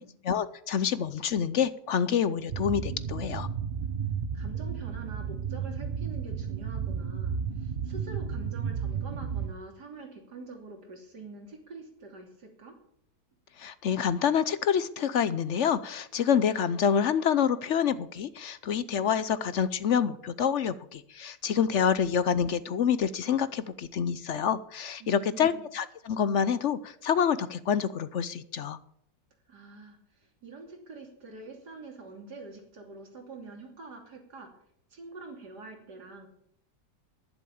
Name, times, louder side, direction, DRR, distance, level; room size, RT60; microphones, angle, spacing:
voice 1, 0.3-3.5 13.6-28.8, left 7 dB, 60° left, 15 dB, 0.8 m, -27 dB
sound 1, 2.5-9.5, right 7 dB, 50° right, 0.7 m, -33 dB
voice 2, 4.3-12.7 25.0-25.7 29.5-34.5 34.9-36.3, right 3 dB, 90° right, 3 dB, 3.5 m, -45 dB
11.0 x 11.0 x 7.0 m, 0.70 s
omnidirectional pair, 1.7 m